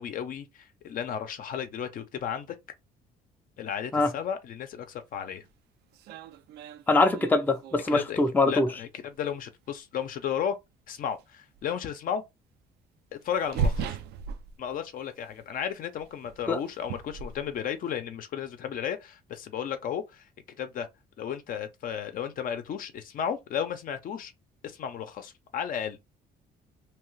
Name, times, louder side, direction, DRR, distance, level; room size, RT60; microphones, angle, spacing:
voice 1, 0.0-2.6 3.6-5.4 7.9-10.6 10.9-12.2 13.2-14.0 14.6-20.3 20.6-20.9 21.2-24.3 24.6-26.1, left 8 dB, 55° left, 0.6 m, -34 dB
sound 1, 5.4-5.5 5.9-8.0 9.1-9.2 11.0-11.2 11.5-11.6 13.2-15.0 15.3-15.6 15.9-18.0, right 4 dB, 75° right, 0.5 m, -35 dB
voice 2, 6.9-8.7 16.5-16.6, left 3 dB, 10° left, 0.5 m, -23 dB
2.9 x 2.3 x 3.1 m
cardioid pair, 110°, 17 cm